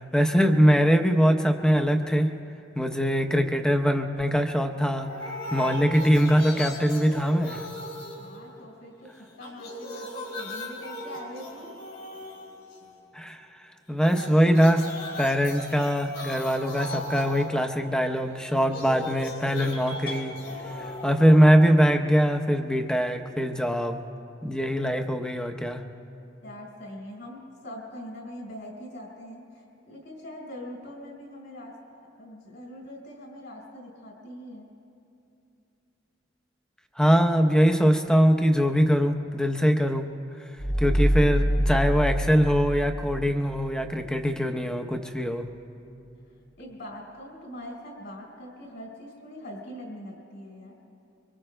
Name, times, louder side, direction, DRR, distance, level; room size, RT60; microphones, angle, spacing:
voice 1, 0.0-2.4 2.8-5.1 5.5-7.7 13.1-13.4 13.9-14.9 15.2-20.4 20.8-24.0 24.4-25.8 37.0-40.1 40.8-45.5, equal, 5° left, 5 dB, 0.7 m, -22 dB
sound 1, 5.0-9.0 9.3-13.0 14.0-22.0, left 1 dB, 85° left, 3.4 m, -38 dB
voice 2, 8.2-9.1 9.4-11.9 26.4-31.8 32.2-34.7 46.6-50.8, left 1 dB, 65° left, -1 dB, 4.2 m, -42 dB
sound 2, 19.6-21.6, left 2 dB, 25° left, 1.1 m, -41 dB
sound 3, 40.6-43.9, equal, 40° left, 1.7 m, -26 dB
26.0 x 24.5 x 2.2 m, 2.6 s
head